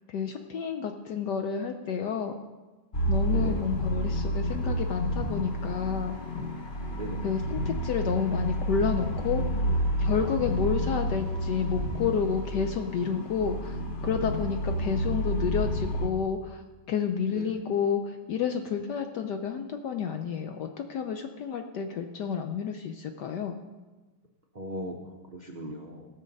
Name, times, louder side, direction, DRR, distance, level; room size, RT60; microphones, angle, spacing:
voice 1, 0.1-2.4 3.1-6.2 7.2-9.4 10.0-13.8 14.0-16.6 16.9-23.6, left 7 dB, 70° left, 6 dB, 1.0 m, -30 dB
sound 1, 2.9-16.1, equal, 40° left, 0.8 m, -30 dB
voice 2, 3.3-3.6 6.9-7.2 17.3-17.7 24.5-26.1, equal, 70° right, 0 dB, 0.4 m, -38 dB
17.0 x 6.4 x 5.3 m, 1.2 s
omnidirectional pair, 2.4 m